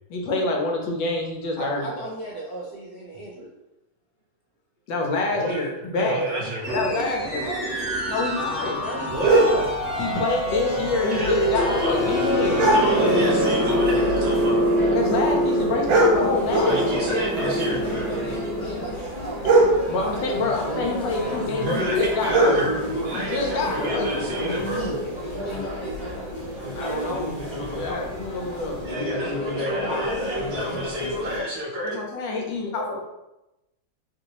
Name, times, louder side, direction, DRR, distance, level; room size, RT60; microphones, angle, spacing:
voice 1, 0.1-1.9 4.9-6.4 6.7-7.4 8.0-9.1 9.5-9.6 10.0-12.6 14.9-16.9 19.9-22.7 23.1-24.6 26.7-27.4 27.7-28.8 31.9-32.8, left 3 dB, 70° left, 1 dB, 1.3 m, -27 dB
voice 2, 1.6-3.5 6.9-7.7 12.4-14.1 16.5-19.9 25.3-26.2, right 2 dB, 55° left, -5 dB, 1.4 m, -35 dB
voice 3, 5.3-6.8 9.0-9.6 11.1-12.1 12.7-14.7 16.7-17.8 21.6-24.8 28.8-32.0, right 1 dB, 60° right, -3 dB, 0.7 m, -30 dB
sound 1, 6.6-18.9, equal, 25° right, 1.5 m, -25 dB
sound 2, 9.1-28.9, right 2 dB, 75° right, 1.4 m, -27 dB
sound 3, 11.6-31.4, equal, 30° left, 1.3 m, -31 dB
3.3 x 2.7 x 2.9 m, 0.95 s
omnidirectional pair, 2.2 m